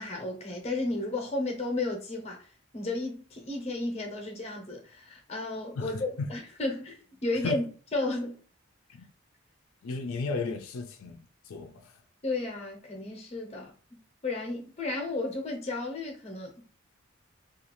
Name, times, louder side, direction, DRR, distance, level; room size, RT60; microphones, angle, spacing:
voice 1, 0.0-2.5 2.7-7.6 7.9-8.4 12.2-13.7 14.2-16.5, left 2 dB, 30° left, 0.7 m, -33 dB
voice 2, 9.8-11.9, left 3 dB, 90° left, 0.4 m, -34 dB
2.6 x 2.4 x 2.9 m
head